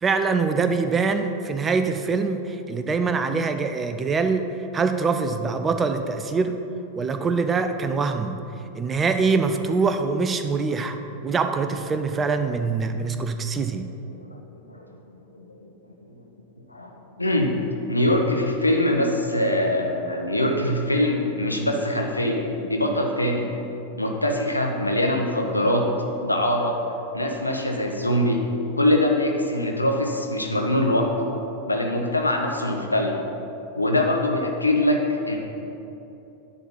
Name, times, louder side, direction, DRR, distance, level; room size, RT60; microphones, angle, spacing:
voice 1, 0.0-4.5 4.7-6.6 7.0-8.4 8.8-11.0 11.2-13.9, right 4 dB, 20° right, 7 dB, 0.5 m, -24 dB
voice 2, 14.7-15.7 16.7-16.9 17.2-17.5 17.9-23.5 24.0-25.8 26.2-26.8 27.1-28.4 28.7-31.3 31.7-33.2 33.7-35.0 35.3-35.4, left 1 dB, 85° left, 1 dB, 1.0 m, -23 dB
10.0 x 4.0 x 7.2 m, 2.8 s
figure-of-eight pair, 90°, 0 cm